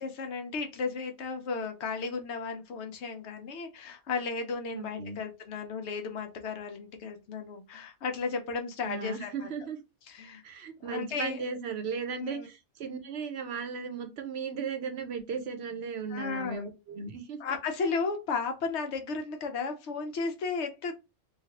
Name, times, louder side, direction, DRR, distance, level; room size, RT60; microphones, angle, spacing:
voice 1, 0.0-9.5 10.1-10.4 10.8-11.4 12.1-12.5 16.1-16.7 17.4-20.9, left 4 dB, 70° left, 0.9 m, -34 dB
voice 2, 4.7-5.2 8.8-9.8 10.4-17.4, right 5 dB, 65° right, 0.9 m, -36 dB
3.1 x 2.3 x 2.8 m
omnidirectional pair, 1.2 m